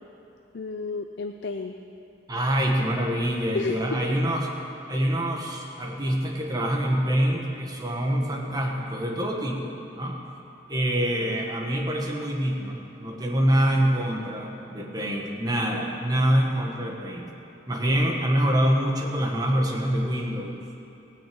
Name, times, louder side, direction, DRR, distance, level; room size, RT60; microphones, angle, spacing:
voice 1, 0.5-1.8 3.5-4.1 11.1-11.4, left 4 dB, 65° left, 5 dB, 0.5 m, -32 dB
voice 2, 2.3-4.5 4.9-10.2 10.7-17.3 17.7-20.6, equal, 20° right, 0 dB, 1.5 m, -25 dB
17.0 x 6.6 x 8.7 m, 2.8 s
head